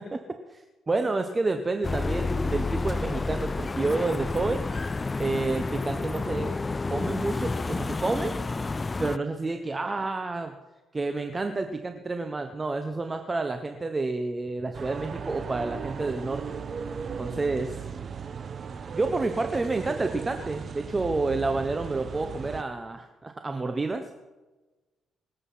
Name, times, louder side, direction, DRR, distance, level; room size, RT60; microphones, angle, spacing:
voice 1, 0.5-4.6 5.2-6.5 6.9-8.4 9.0-10.5 10.9-16.5 17.2-17.8 18.9-24.1, right 3 dB, 25° right, 6 dB, 1.1 m, -29 dB
sound 1, 1.8-9.2, left 3 dB, 25° left, 0.4 m, -30 dB
sound 2, 14.7-22.6, right 6 dB, 45° right, 1.1 m, -37 dB
24.5 x 8.1 x 5.8 m, 1.2 s
cardioid pair, 90°, 0 cm